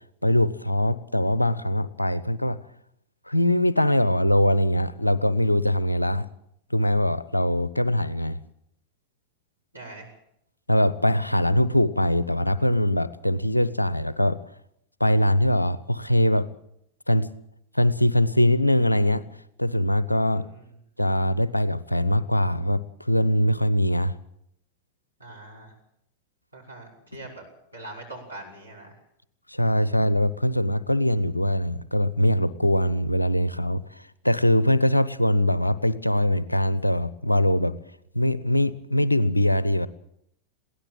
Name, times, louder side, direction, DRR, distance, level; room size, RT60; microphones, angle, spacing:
voice 1, 0.2-2.6 3.3-6.3 6.7-8.4 10.7-14.4 15.0-16.5 17.1-17.3 17.7-19.2 19.6-20.5 21.0-24.1 29.5-37.8 38.1-39.9, left 1 dB, 85° left, 17 dB, 0.9 m, -22 dB
voice 2, 9.7-10.1 20.3-20.7 25.2-25.7 26.5-27.4 27.7-29.0, right 2 dB, 85° right, -1 dB, 6.7 m, -42 dB
22.0 x 17.0 x 7.6 m, 0.76 s
figure-of-eight pair, 90°, 0 cm